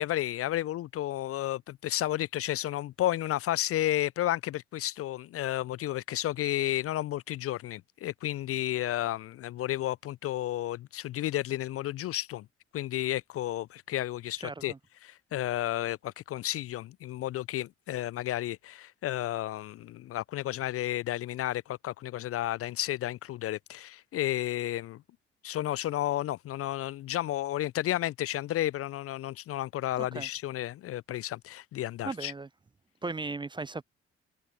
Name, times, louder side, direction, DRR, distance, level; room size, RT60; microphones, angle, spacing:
voice 1, 0.0-12.5 12.7-14.7 15.0-25.0 25.4-32.3, left 13 dB, 45° left, 0.5 m, -32 dB
voice 2, 14.4-14.8 30.0-30.3 32.0-32.5 33.0-33.8, right 3 dB, 15° right, 0.5 m, -37 dB
figure-of-eight pair, 45°, 33 cm